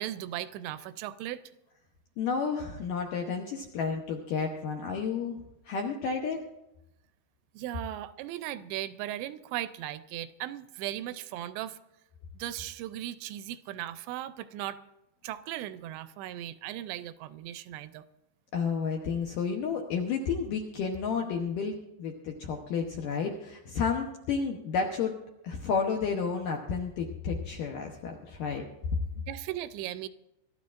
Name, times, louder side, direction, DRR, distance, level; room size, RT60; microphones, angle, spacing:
voice 1, 0.0-1.4 7.5-11.8 12.3-14.8 15.2-18.1 29.2-30.1, right 13 dB, 85° right, 13 dB, 2.8 m, -37 dB
voice 2, 2.2-5.4 5.7-6.4 18.5-25.1 25.4-28.6, left 5 dB, 75° left, 1 dB, 2.0 m, -31 dB
24.5 x 13.0 x 2.5 m, 0.88 s
omnidirectional pair, 5.0 m